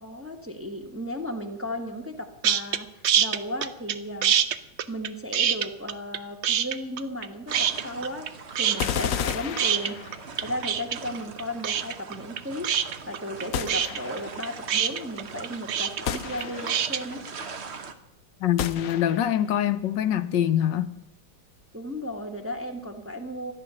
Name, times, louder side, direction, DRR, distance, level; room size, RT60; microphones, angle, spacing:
voice 1, 0.0-4.4 4.9-10.0 10.4-17.2 21.7-23.5, equal, 10° right, 1.1 m, -35 dB
sound 1, 2.4-2.8 3.0-4.0 4.2-6.2 6.4-7.3 7.5-8.3 8.6-17.0, right 9 dB, 70° right, 0.6 m, -24 dB
sound 2, 7.5-17.9, right 5 dB, 45° right, 1.1 m, -41 dB
sound 3, 8.8-10.4 13.5-14.4 16.1-17.0 18.6-19.4, left 9 dB, 60° left, 0.9 m, -32 dB
voice 2, 18.4-20.9, left 10 dB, 80° left, 1.4 m, -24 dB
14.0 x 10.5 x 6.9 m
omnidirectional pair, 2.0 m